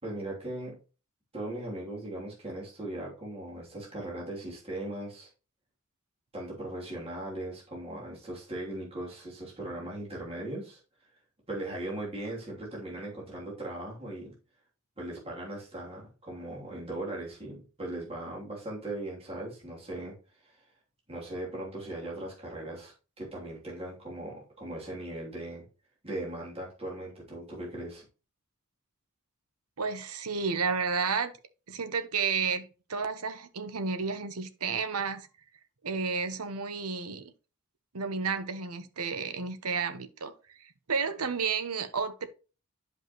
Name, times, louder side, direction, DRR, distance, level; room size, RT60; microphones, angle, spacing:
voice 1, 0.0-0.8 1.3-5.3 6.3-10.8 11.5-14.3 15.0-20.2 20.4-20.6 21.1-25.6 26.0-28.0, right 1 dB, 25° right, 3.1 m, -39 dB
voice 2, 29.8-31.3 31.7-35.3 35.8-37.3 37.9-42.3, right 5 dB, 85° right, 1.0 m, -32 dB
11.0 x 5.3 x 3.1 m
head